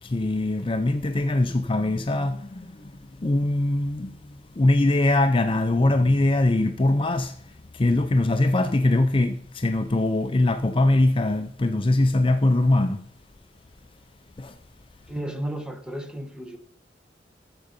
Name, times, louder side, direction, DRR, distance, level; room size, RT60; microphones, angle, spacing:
voice 1, 0.0-13.0 14.4-14.5, left 2 dB, 30° left, 0.5 m, -22 dB
voice 2, 15.1-16.6, right 1 dB, 5° right, 1.1 m, -33 dB
13.5 x 6.7 x 5.3 m
head